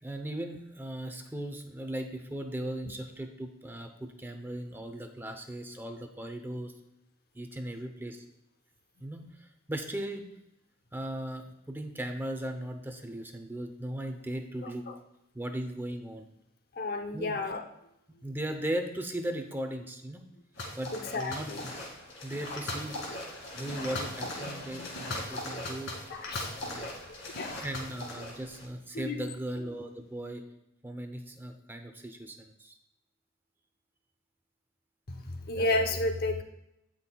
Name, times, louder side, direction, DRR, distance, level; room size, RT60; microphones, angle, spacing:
voice 1, 0.0-6.7 7.3-8.2 9.0-10.2 10.9-14.9 15.3-16.3 17.1-17.4 18.2-20.3 20.8-21.5 22.2-22.9 23.5-25.9 26.6-26.9 27.6-30.4 30.8-32.7, right 1 dB, 10° right, 5 dB, 0.7 m, -37 dB
voice 2, 14.6-14.9 16.7-17.6 20.9-21.6 22.5-22.6 25.3-25.5 26.1-27.0 27.3-27.7 28.9-29.2 35.1-36.4, left 2 dB, 50° left, 6 dB, 0.8 m, -32 dB
sound 1, 20.6-28.7, left 1 dB, 65° left, 2.2 m, -39 dB
16.0 x 5.7 x 2.3 m, 0.83 s
head